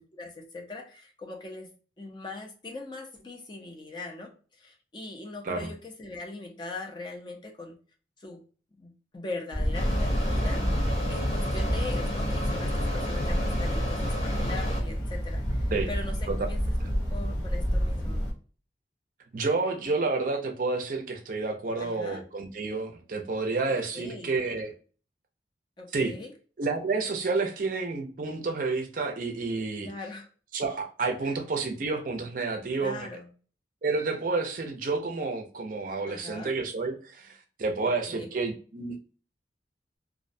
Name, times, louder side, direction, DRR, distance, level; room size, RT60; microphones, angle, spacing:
voice 1, 0.1-1.7 2.0-7.8 8.2-8.4 8.8-10.8 11.1-16.6 16.9-18.3 21.8-22.2 23.9-24.4 25.8-26.3 29.8-30.3 31.2-31.4 32.7-33.3 36.1-36.5 38.1-38.3, left 2 dB, 25° left, 2 dB, 0.4 m, -41 dB
sound 1, 9.5-18.3, equal, 85° left, 0.8 m, -29 dB
Mechanisms, 9.7-14.8, left 1 dB, 55° left, 0.9 m, -32 dB
voice 2, 19.3-24.7 25.9-26.1 26.6-29.9 30.5-33.1 33.8-37.3 37.6-38.9, right 3 dB, 45° right, 3 dB, 0.4 m, -30 dB
2.5 x 2.1 x 2.5 m, 0.39 s
head